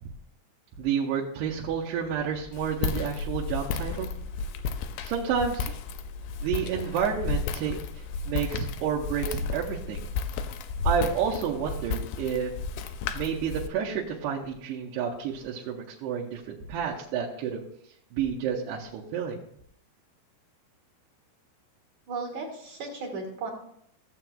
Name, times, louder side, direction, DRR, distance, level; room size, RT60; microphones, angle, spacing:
voice 1, 0.8-4.1 5.0-5.8 6.4-10.1 10.8-12.5 13.1-16.4 16.7-17.6 18.1-19.4, right 7 dB, 80° right, -4 dB, 2.8 m, -30 dB
Walk footsteps, 2.5-13.7, left 4 dB, 85° left, 2.4 m, -33 dB
voice 2, 22.1-23.5, right 3 dB, 55° right, 0 dB, 2.4 m, -35 dB
15.0 x 7.5 x 2.3 m, 0.70 s
omnidirectional pair, 4.9 m